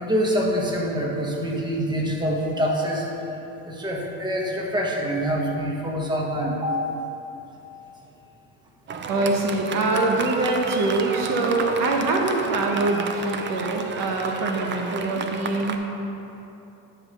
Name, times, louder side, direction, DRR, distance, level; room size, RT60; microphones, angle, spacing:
voice 1, 0.0-3.1 3.6-7.0, equal, 10° right, -2 dB, 1.3 m, -25 dB
Fireworks, 8.9-15.8, right 5 dB, 30° right, 0.6 m, -31 dB
voice 2, 9.1-15.9, right 2 dB, 55° right, 1 dB, 1.0 m, -24 dB
9.9 x 3.3 x 6.5 m, 3.0 s
supercardioid pair, 105°, 39 cm